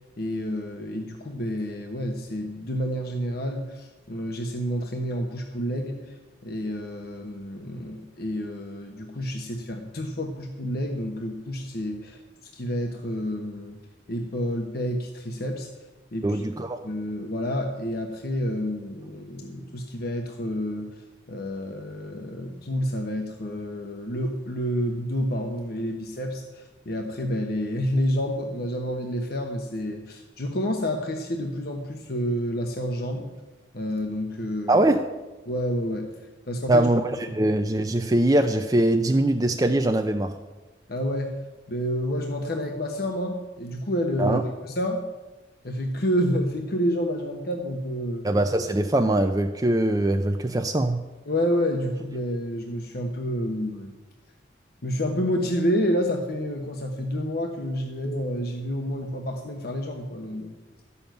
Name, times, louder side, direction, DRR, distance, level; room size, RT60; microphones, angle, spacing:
voice 1, 0.2-6.2 6.4-12.2 12.5-13.8 14.1-15.7 16.1-16.4 16.8-21.0 21.3-33.3 33.7-34.9 35.5-36.1 36.5-36.9 40.9-41.4 41.7-45.1 45.6-48.2 51.3-54.0 54.8-60.6, equal, 55° left, 3 dB, 1.1 m, -29 dB
voice 2, 16.2-16.9 34.7-35.0 36.7-40.4 44.2-44.4 48.2-51.0, right 1 dB, 20° right, 5 dB, 0.5 m, -22 dB
13.0 x 7.0 x 9.2 m, 1.2 s
head